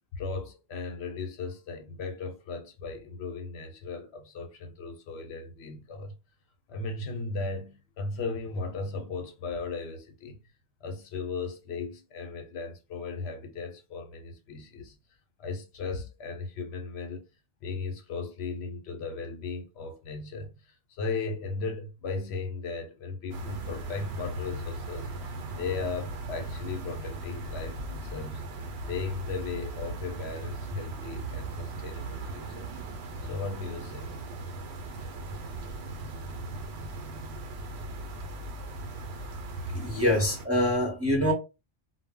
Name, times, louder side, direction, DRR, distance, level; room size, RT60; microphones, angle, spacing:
voice 1, 0.1-6.1 6.7-10.4 10.8-15.0 15.4-17.2 17.6-32.7 33.3-34.2, left 4 dB, 75° left, 0.9 m, -36 dB
sound 1, 23.3-40.5, right 2 dB, 75° right, 0.8 m, -38 dB
voice 2, 39.7-41.3, equal, 15° right, 0.8 m, -25 dB
2.1 x 2.1 x 3.5 m
omnidirectional pair, 1.1 m